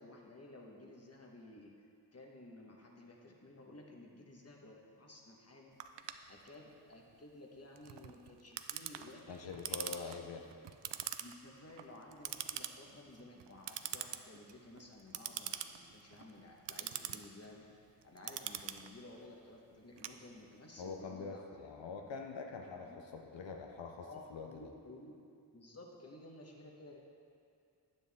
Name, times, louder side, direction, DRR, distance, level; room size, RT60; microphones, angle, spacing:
voice 1, 0.0-1.7 2.1-5.7 6.3-10.0 11.2-17.7 18.0-21.7 22.8-23.0 24.1-25.1 25.5-27.0, left 2 dB, 35° left, 0 dB, 1.3 m, -54 dB
Clock, 5.8-20.7, right 10 dB, 75° right, 0.5 m, -45 dB
voice 2, 9.3-10.4 20.8-24.7, left 5 dB, 90° left, 2 dB, 0.7 m, -45 dB
9.4 x 8.1 x 3.6 m, 2.5 s
cardioid pair, 65°, 43 cm